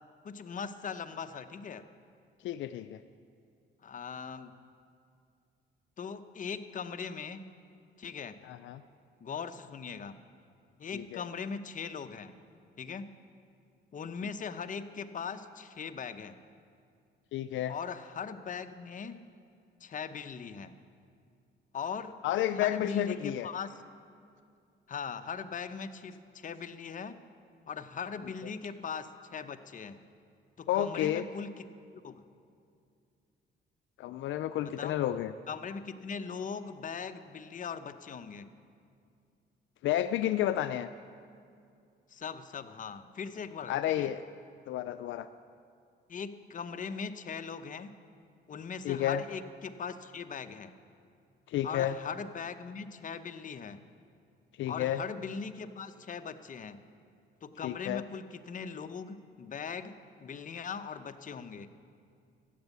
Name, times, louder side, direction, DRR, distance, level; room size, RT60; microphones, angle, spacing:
voice 1, 0.2-1.8 3.8-4.5 6.0-7.5 8.0-8.4 9.2-10.2 10.8-12.3 12.8-13.1 13.9-16.4 17.7-19.2 19.8-20.7 21.7-22.1 22.5-23.8 24.9-27.2 27.7-30.0 30.6-31.7 31.9-32.2 34.6-34.9 35.5-38.5 42.1-44.1 46.1-47.9 48.5-50.7 51.6-53.8 54.7-56.8 57.4-61.7, left 6 dB, 40° left, 10 dB, 0.8 m, -40 dB
voice 2, 2.4-3.0 8.4-8.8 10.9-11.2 17.3-17.7 22.2-23.5 30.7-31.2 34.0-35.3 39.8-40.9 43.7-44.2 44.7-45.3 48.8-49.2 51.5-51.9 54.6-55.0 57.6-58.0, left 12 dB, 75° left, 12 dB, 0.4 m, -31 dB
13.5 x 8.1 x 8.2 m, 2.4 s
cardioid pair, 90°, 20 cm